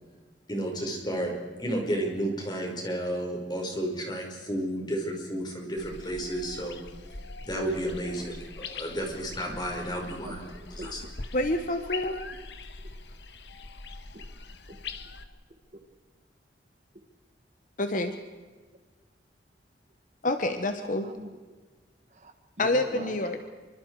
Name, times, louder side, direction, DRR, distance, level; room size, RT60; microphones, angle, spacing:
voice 1, 0.5-1.3 1.6-6.8 7.4-10.4 10.8-11.0, right 1 dB, 25° left, 1 dB, 5.4 m, -32 dB
sound 1, 5.8-15.2, left 3 dB, 70° left, 1.6 m, -42 dB
voice 2, 10.2-11.1 12.3-12.5 12.8-12.9 14.1-14.3 15.7-15.8 21.0-21.3 22.1-23.4, right 1 dB, 40° right, 7 dB, 1.7 m, -44 dB
voice 3, 11.3-12.2 17.8-18.1 20.2-21.1 22.6-23.4, left 2 dB, 45° left, 7 dB, 1.2 m, -27 dB
26.5 x 25.0 x 4.9 m, 1.4 s
head